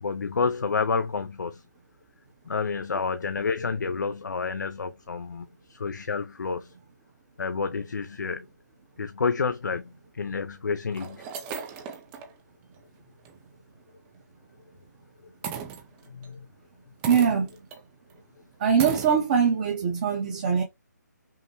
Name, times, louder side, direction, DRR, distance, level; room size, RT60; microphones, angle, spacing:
voice 1, 0.0-1.6 2.5-6.7 7.4-8.5 9.0-11.2 16.1-16.5, left 5 dB, 75° left, 0.5 m, -29 dB
sound 1, 10.3-10.4 10.9-12.3 12.8-12.9 13.2-13.4 15.4-16.3 17.0-17.8 18.1-18.2 18.8-19.2, right 7 dB, 15° right, 0.4 m, -36 dB
voice 2, 17.1-17.5 18.6-20.6, right 7 dB, 30° right, 0.8 m, -22 dB
5.6 x 2.1 x 2.9 m
figure-of-eight pair, 155°, 10 cm